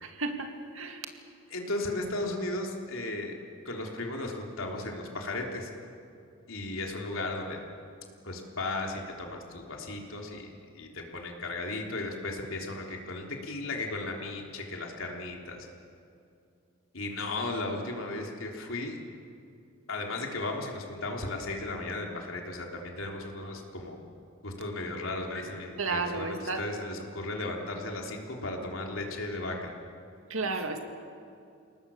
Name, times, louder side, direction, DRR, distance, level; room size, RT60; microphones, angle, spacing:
voice 1, 0.0-1.1 25.8-26.6 30.3-30.8, right 3 dB, 75° right, 5 dB, 2.2 m, -32 dB
voice 2, 1.5-3.3 3.7-5.7 6.5-7.6 8.2-10.5 10.8-15.7 16.9-19.0 19.9-24.0 24.4-29.7, left 2 dB, 70° left, 0 dB, 3.5 m, -35 dB
30.0 x 18.5 x 7.1 m, 2.5 s
head